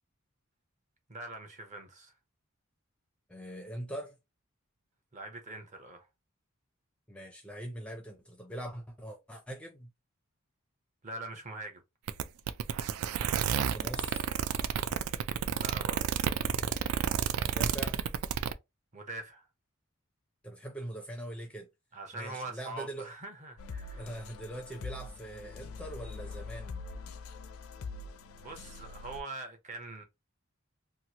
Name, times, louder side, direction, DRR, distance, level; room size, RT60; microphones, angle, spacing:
voice 1, 1.1-2.2 5.1-6.1 11.0-11.8 15.6-16.2 18.9-19.5 21.9-24.1 28.4-30.0, right 2 dB, 35° right, 0.7 m, -43 dB
voice 2, 3.3-4.1 7.1-9.9 13.5-14.3 17.4-18.0 20.4-21.7 22.1-23.1 24.0-26.8, right 1 dB, 5° left, 0.4 m, -42 dB
sound 1, 12.1-18.5, right 8 dB, 80° right, 0.3 m, -30 dB
sound 2, 23.6-29.2, left 3 dB, 75° left, 0.4 m, -43 dB
2.9 x 2.4 x 2.8 m
head